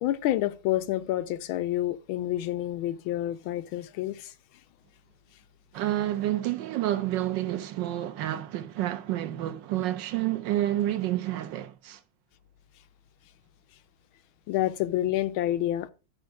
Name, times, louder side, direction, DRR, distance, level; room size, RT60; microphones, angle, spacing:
voice 1, 0.0-4.3 14.5-15.9, left 14 dB, 85° left, 1.5 m, -28 dB
voice 2, 5.7-12.0, right 13 dB, 70° right, 1.3 m, -29 dB
12.5 x 5.1 x 4.6 m
omnidirectional pair, 2.2 m